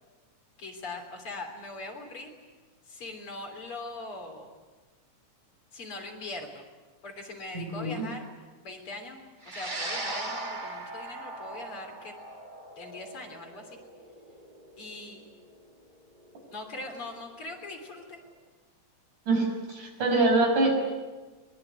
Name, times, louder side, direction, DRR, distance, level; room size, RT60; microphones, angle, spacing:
voice 1, 0.6-2.3 2.9-4.5 5.7-6.6 7.0-8.2 8.6-9.2 9.5-12.1 12.8-13.7 14.8-15.2 16.5-18.2, left 2 dB, 45° left, 3 dB, 4.1 m, -41 dB
voice 2, 7.7-8.1 19.3-20.7, right 2 dB, 80° right, 2 dB, 7.3 m, -24 dB
sound 1, 9.4-18.0, right 2 dB, 20° right, 1.5 m, -40 dB
22.5 x 22.0 x 9.5 m, 1.3 s
omnidirectional pair, 3.5 m